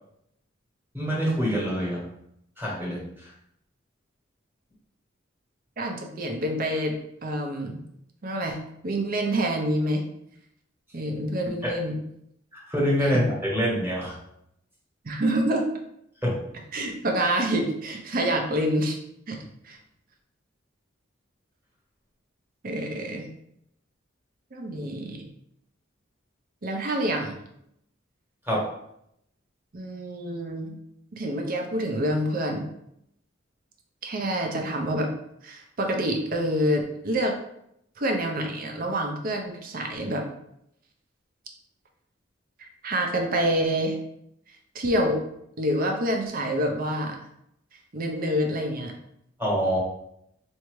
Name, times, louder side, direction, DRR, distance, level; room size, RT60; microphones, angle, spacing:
voice 1, 0.9-2.0 2.6-3.3 11.6-11.7 12.5-14.1 16.2-16.3 28.5-28.6 49.4-49.8, equal, 10° right, -5 dB, 1.2 m, -25 dB
voice 2, 5.8-7.8 8.2-10.0 10.9-12.0 13.0-13.2 15.0-15.7 16.7-19.0 19.3-19.4 19.6-19.8 22.6-23.3 24.5-25.2 26.6-27.4 29.7-30.8 31.1-32.7 34.0-35.1 35.4-37.3 38.0-40.2 42.6-44.0 44.7-45.2 45.6-47.2 47.9-48.9, right 1 dB, 50° right, 3 dB, 0.6 m, -27 dB
4.6 x 2.7 x 3.1 m, 0.76 s
head